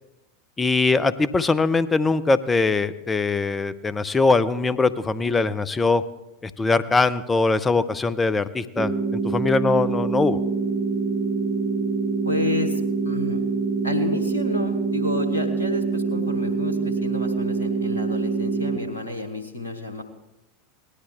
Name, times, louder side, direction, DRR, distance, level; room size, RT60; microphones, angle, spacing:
voice 1, 0.6-6.0 6.4-10.4, left 3 dB, 15° left, 14 dB, 0.6 m, -22 dB
sound 1, 8.8-18.8, right 4 dB, 20° right, 1.4 m, -25 dB
voice 2, 12.2-13.4 13.8-20.0, left 1 dB, 80° left, 6 dB, 1.1 m, -30 dB
18.5 x 11.5 x 3.4 m, 0.97 s
figure-of-eight pair, 85°, 0 cm